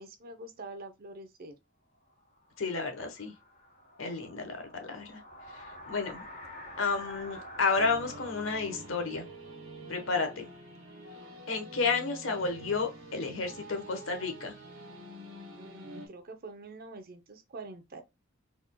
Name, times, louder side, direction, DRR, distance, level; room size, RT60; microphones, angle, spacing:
voice 1, 0.0-1.5 15.5-18.0, right 2 dB, 50° right, 0.7 m, -45 dB
sound 1, 2.1-10.9, left 1 dB, 35° left, 1.7 m, -49 dB
voice 2, 2.6-3.3 4.0-5.2 5.9-6.2 6.8-9.2 9.9-10.5 11.5-14.5, left 4 dB, 70° left, 1.0 m, -31 dB
sound 2, 7.7-16.1, right 1 dB, 85° right, 1.3 m, -47 dB
4.2 x 3.6 x 2.2 m
head